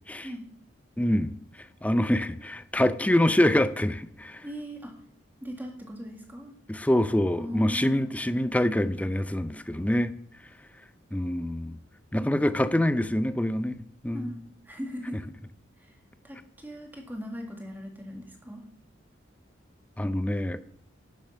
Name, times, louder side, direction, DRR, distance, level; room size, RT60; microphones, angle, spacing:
voice 1, 0.2-0.5 4.4-4.9 5.4-6.6 7.4-8.1 14.1-15.2 15.8-16.0 16.2-18.7, equal, 10° right, 1.9 m, -39 dB
voice 2, 1.0-1.3 1.8-4.4 6.7-10.1 11.1-11.7 12.1-13.8 14.0-14.3 20.0-20.6, left 1 dB, 5° left, 0.4 m, -25 dB
11.0 x 7.0 x 6.5 m
head